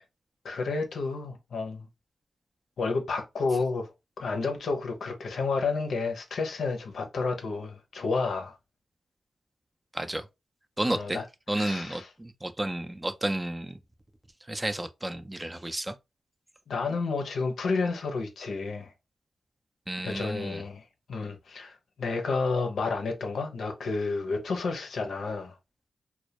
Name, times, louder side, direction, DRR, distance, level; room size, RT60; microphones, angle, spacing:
voice 1, 0.4-1.9 2.8-3.9 4.2-8.5 10.9-11.2 11.5-12.1 16.7-18.9 20.0-20.8 21.1-25.5, left 4 dB, 80° left, 0.5 m, -30 dB
voice 2, 9.9-10.2 10.8-11.2 11.5-13.8 14.5-16.0 19.9-20.6, right 1 dB, 20° right, 0.4 m, -32 dB
2.1 x 2.1 x 2.7 m
supercardioid pair, 45°, 0 cm